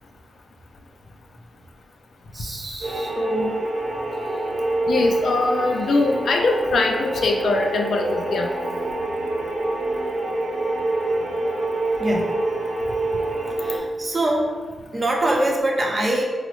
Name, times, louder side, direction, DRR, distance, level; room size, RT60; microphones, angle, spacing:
voice 1, 2.3-3.5 6.0-6.1 12.0-12.3 13.6-14.5 14.9-16.2, right 1 dB, 40° right, -1 dB, 0.7 m, -24 dB
sound 1, 2.8-13.8, right 2 dB, 75° right, 0.9 m, -26 dB
voice 2, 4.9-8.5, left 3 dB, 75° left, 2 dB, 0.4 m, -22 dB
3.9 x 2.0 x 3.0 m, 1.5 s
cardioid pair, 70°, 0 cm